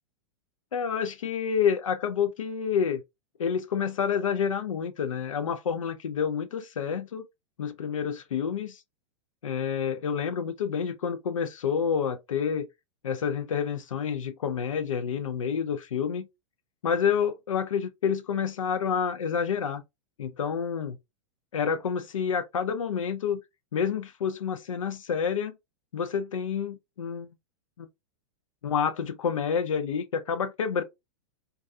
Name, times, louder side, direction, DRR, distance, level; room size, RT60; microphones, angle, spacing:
voice 1, 0.7-3.0 3.4-7.3 7.6-8.8 9.4-12.7 13.0-16.3 16.8-19.8 20.2-21.0 21.5-23.4 23.7-25.5 25.9-27.4 27.8-27.9 28.6-30.8, left 7 dB, 85° left, 0.5 m, -28 dB
2.4 x 2.3 x 2.5 m
hypercardioid pair, 110°, 16 cm